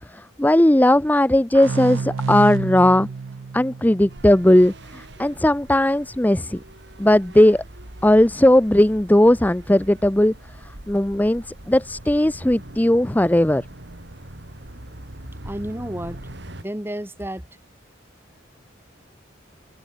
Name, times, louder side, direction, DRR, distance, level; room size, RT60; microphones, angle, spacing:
voice 1, 0.1-3.1 3.5-6.6 7.0-7.6 8.0-10.3 10.9-13.6, left 1 dB, 10° left, 0.5 m, -17 dB
sound 1, 1.5-5.0, right 5 dB, 80° right, 0.5 m, -29 dB
sound 2, 4.1-16.6, right 1 dB, 60° right, 2.9 m, -42 dB
voice 2, 15.4-16.2 16.6-17.5, right 1 dB, 10° right, 1.9 m, -31 dB
head